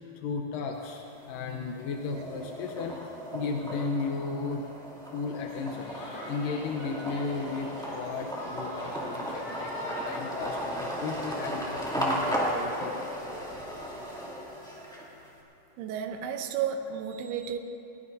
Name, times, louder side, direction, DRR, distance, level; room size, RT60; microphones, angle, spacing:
voice 1, 0.0-4.6 5.1-5.9 6.3-13.6, left 4 dB, 80° left, 2 dB, 2.0 m, -35 dB
sound 1, 0.7-1.4 1.8-15.3, equal, ahead, 1.2 m, -35 dB
sound 2, 5.5-10.7, equal, 45° left, 4.4 m, -42 dB
voice 2, 15.8-17.6, right 8 dB, 80° right, 6 dB, 2.8 m, -32 dB
22.0 x 19.5 x 2.7 m, 2.8 s
omnidirectional pair, 4.9 m